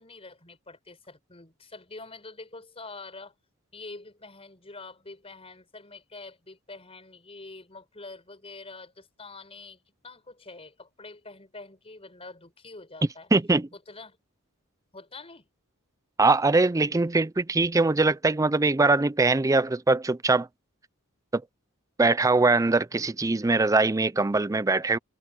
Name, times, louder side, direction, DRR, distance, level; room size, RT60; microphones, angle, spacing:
voice 1, 0.0-3.3 3.7-9.8 10.0-13.3 13.9-14.2 14.9-15.5, left 3 dB, 25° left, 4.9 m, -45 dB
voice 2, 13.3-13.7 16.2-20.5 21.3-21.4 22.0-25.0, right 3 dB, 15° right, 0.4 m, -22 dB
head